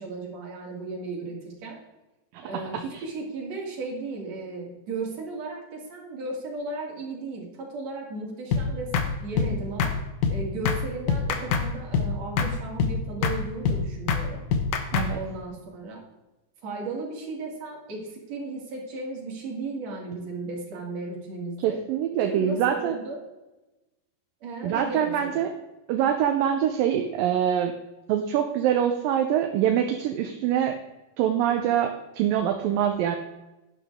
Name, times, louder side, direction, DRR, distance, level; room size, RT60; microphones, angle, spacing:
voice 1, 0.0-1.8 2.4-10.0 10.3-14.4 15.1-16.0 16.6-21.8 22.3-23.2 24.4-25.4, right 3 dB, 50° right, -1 dB, 3.6 m, -35 dB
sound 1, 8.5-8.7 8.9-9.1 9.4-9.5 9.8-10.0 10.2-10.4 10.7-10.8 11.1-11.7 11.9-12.1 12.4-12.5 12.8-13.0 13.2-13.4 13.7-13.8 14.1-14.2 14.5-15.1, left 6 dB, 65° left, 2.3 m, -24 dB
voice 2, 21.6-22.9 24.6-25.5 25.9-27.7 28.1-30.8 31.2-33.2, right 9 dB, 80° right, 5 dB, 2.4 m, -24 dB
12.0 x 10.0 x 3.6 m, 1.0 s
omnidirectional pair, 4.1 m